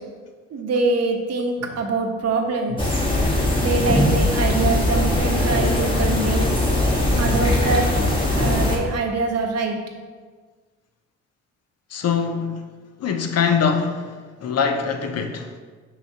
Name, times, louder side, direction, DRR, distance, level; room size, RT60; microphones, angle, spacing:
voice 1, 0.5-3.0 3.6-6.5 7.2-7.9 8.3-9.8, right 3 dB, 55° right, 1.0 m, -24 dB
sound 1, 1.6-2.0 2.3-8.5, equal, 90° right, 1.6 m, -36 dB
sound 2, 2.8-8.8, left 1 dB, 15° left, 1.3 m, -20 dB
voice 2, 11.9-12.6 13.0-14.0 14.4-15.5, left 6 dB, 55° left, 0.8 m, -22 dB
5.9 x 5.8 x 2.8 m
cardioid pair, 90°, 30 cm